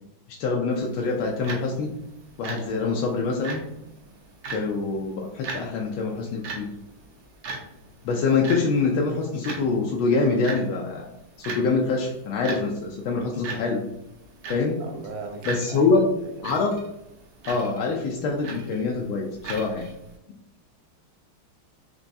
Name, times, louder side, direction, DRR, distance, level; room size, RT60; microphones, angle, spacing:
voice 1, 0.4-1.9 2.4-3.6 4.5-6.7 8.0-11.1 11.4-13.8 14.5-14.8 15.5-16.1 16.4-16.8 17.5-19.9, left 4 dB, 80° left, -1 dB, 1.4 m, -25 dB
sound 1, 0.7-20.2, right 4 dB, 70° right, 1.5 m, -40 dB
voice 2, 14.8-16.5, right 3 dB, 90° right, 3 dB, 0.7 m, -38 dB
4.5 x 3.0 x 2.6 m, 0.85 s
omnidirectional pair, 2.3 m